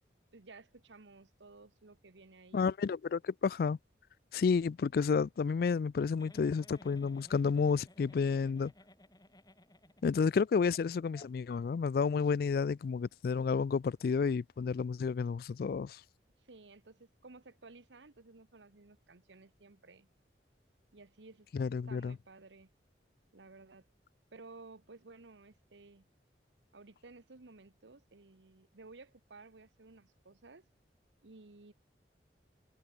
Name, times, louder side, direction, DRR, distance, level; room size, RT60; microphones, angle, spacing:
voice 1, 0.3-2.7 16.4-20.1 20.9-22.7 23.3-23.9 24.3-26.1 26.7-30.7 31.2-31.7, right 3 dB, 90° right, 1.2 m, -55 dB
voice 2, 2.5-3.8 4.3-8.7 10.0-16.0 21.5-22.2, left 5 dB, 55° left, 0.3 m, -31 dB
Giggle, 6.2-10.4 10.7-10.8 11.1-11.3, left 1 dB, 20° left, 5.7 m, -58 dB
head